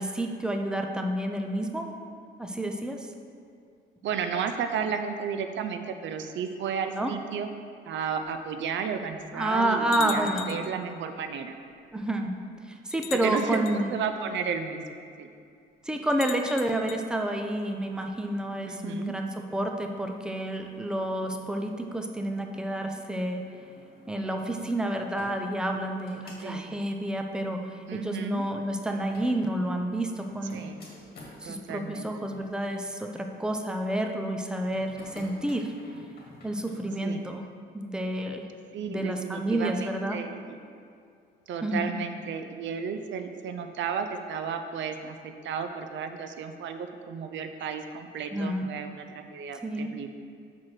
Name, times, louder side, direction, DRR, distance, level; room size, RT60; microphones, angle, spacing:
voice 1, 0.0-2.0 2.4-3.1 7.0-7.1 9.3-10.5 11.9-12.3 12.6-13.9 15.8-23.4 24.1-30.6 31.4-35.7 36.4-37.4 37.7-38.4 38.9-40.2 41.6-42.0 48.3-48.7 49.6-50.0, right 1 dB, 5° right, 4 dB, 0.6 m, -29 dB
voice 2, 4.0-7.5 7.8-11.6 13.1-15.3 18.7-19.1 26.4-26.7 27.9-28.5 30.5-30.8 31.4-32.1 37.0-37.2 38.7-40.6 41.5-50.1, right 6 dB, 70° right, 7 dB, 0.5 m, -33 dB
sound 1, 8.3-8.4 9.1-9.2 9.9-10.8 11.9-12.0 12.9-13.8 16.1-17.0, left 12 dB, 85° left, 0.5 m, -39 dB
sound 2, 17.7-31.4 32.1-32.5 34.6-37.0, left 1 dB, 50° left, 1.8 m, -53 dB
6.2 x 4.8 x 5.7 m, 2.3 s
cardioid pair, 90°, 20 cm